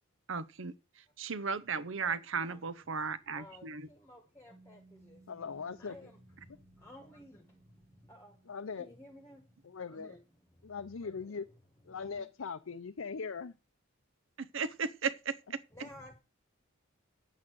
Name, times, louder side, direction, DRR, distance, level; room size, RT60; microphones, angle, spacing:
voice 1, 0.3-3.9 14.4-15.6, right 5 dB, 60° right, 0.8 m, -36 dB
voice 2, 2.0-2.7 3.3-5.3 5.8-8.4 8.8-10.2 10.6-10.7 11.0-11.3 11.9-12.3 15.7-16.1, left 1 dB, 15° left, 1.5 m, -55 dB
Piano, 4.5-11.8, right 3 dB, 25° right, 1.4 m, -65 dB
voice 3, 5.3-6.0 8.5-8.9 9.6-10.2 10.6-11.5 11.8-13.5 15.8-15.9, left 5 dB, 70° left, 0.6 m, -40 dB
9.1 x 8.5 x 6.2 m
head